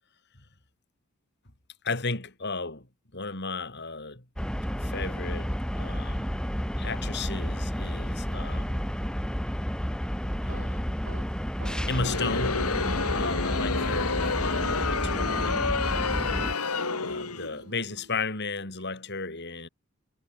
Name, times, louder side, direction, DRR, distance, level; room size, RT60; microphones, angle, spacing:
voice 1, 1.8-2.9 3.1-4.2 4.8-6.4 6.8-8.8 10.4-11.0 11.9-16.1 17.0-19.7, left 4 dB, 50° left, 4.1 m, -35 dB
sound 1, 4.4-16.5, equal, 5° left, 1.3 m, -31 dB
sound 2, 10.5-19.1, right 2 dB, 65° right, 3.9 m, -46 dB
Crowd, 11.8-17.6, left 4 dB, 90° left, 2.6 m, -29 dB
head